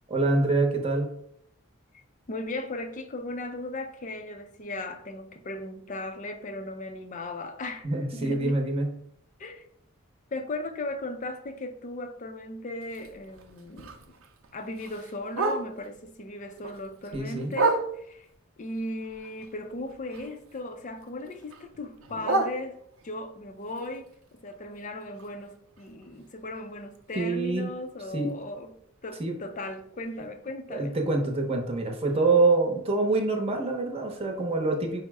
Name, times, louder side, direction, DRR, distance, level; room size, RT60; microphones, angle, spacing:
voice 1, 0.1-1.1 7.8-8.9 17.1-17.5 27.1-27.7 28.1-28.3 29.2-29.3 30.7-35.0, right 3 dB, 30° right, 0.8 m, -25 dB
voice 2, 2.3-7.9 8.1-8.7 9.4-9.6 10.3-14.0 14.5-18.3 18.6-24.1 24.4-28.7 29.0-31.0, left 2 dB, 35° left, 0.5 m, -37 dB
Bark, 12.8-16.0 16.4-18.3 18.8-20.6 20.9-23.2 23.6-27.6 27.9-28.0 28.3-28.7 29.1-29.2 29.5-29.6 30.2-30.3, right 3 dB, 75° right, 0.6 m, -34 dB
5.3 x 2.1 x 4.6 m
head